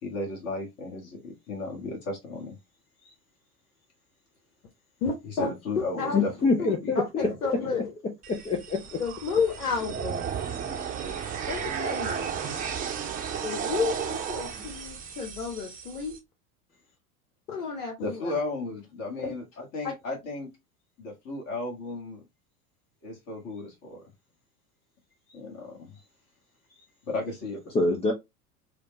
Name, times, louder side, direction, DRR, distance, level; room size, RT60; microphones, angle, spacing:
voice 1, 0.0-2.6 3.0-3.1 5.2-6.3 6.6-7.0 7.3-7.4 7.6-7.7 18.0-20.5 21.0-22.2 23.0-24.0 25.3-26.0 26.7-27.7, left 2 dB, 35° left, 1.5 m, -35 dB
voice 2, 5.0-5.5 6.0-7.9 9.0-10.5 11.5-12.4 13.4-16.2 17.5-18.4 19.2-19.3 19.8-19.9, left 5 dB, 65° left, 1.3 m, -32 dB
voice 3, 6.1-7.3 8.4-9.0 27.7-28.1, left 3 dB, 15° left, 0.5 m, -25 dB
sound 1, 8.2-16.2, right 7 dB, 20° right, 0.9 m, -34 dB
4.9 x 2.2 x 2.9 m
figure-of-eight pair, 80°, 45 cm